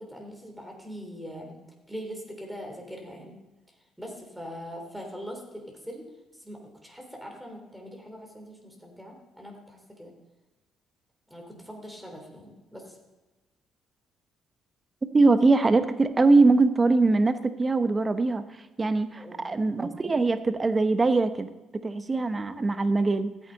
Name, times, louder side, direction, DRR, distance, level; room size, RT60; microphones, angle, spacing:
voice 1, 0.0-1.6 1.9-3.4 4.0-6.1 6.4-10.1 11.3-13.0 19.1-19.4, equal, 5° right, 1 dB, 3.3 m, -42 dB
voice 2, 15.0-18.4 18.8-21.5 21.8-23.3, right 3 dB, 30° right, 11 dB, 0.9 m, -22 dB
13.0 x 8.4 x 4.0 m, 1.2 s
supercardioid pair, 65°, 0 cm